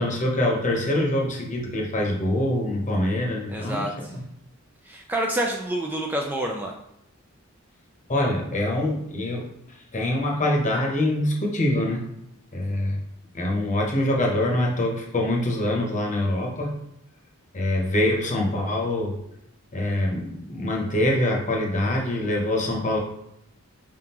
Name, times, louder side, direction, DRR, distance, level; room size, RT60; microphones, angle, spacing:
voice 1, 0.0-4.2 8.1-9.5 9.9-12.0 12.5-13.0 13.3-16.7 17.5-19.1 19.7-23.0, left 1 dB, 35° left, 0 dB, 0.9 m, -24 dB
voice 2, 3.5-4.1 4.9-6.7, right 1 dB, 10° right, 0 dB, 0.3 m, -28 dB
4.7 x 3.6 x 2.9 m, 0.81 s
head